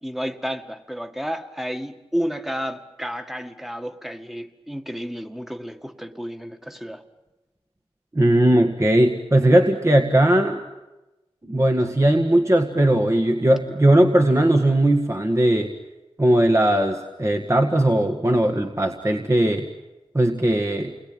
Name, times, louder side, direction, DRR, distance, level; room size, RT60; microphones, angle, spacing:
voice 1, 0.0-7.0, equal, 5° right, 1.9 m, -31 dB
voice 2, 8.1-10.6 11.4-15.7 16.2-19.7 20.1-20.9, right 1 dB, 30° right, 1.9 m, -18 dB
28.5 x 21.5 x 9.1 m
cardioid pair, 45°, 10 cm